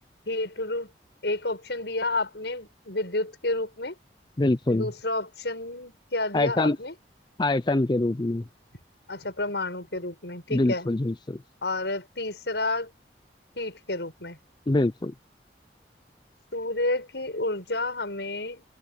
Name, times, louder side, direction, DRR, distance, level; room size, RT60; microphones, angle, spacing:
voice 1, 0.3-0.9 1.2-4.0 4.7-6.9 9.1-10.9 11.6-12.9 13.6-14.4 16.5-18.6, left 2 dB, 80° left, 6.2 m, -30 dB
voice 2, 4.4-4.9 6.3-6.8 7.4-8.4 10.5-11.4 14.7-15.1, left 2 dB, 25° left, 0.5 m, -24 dB
head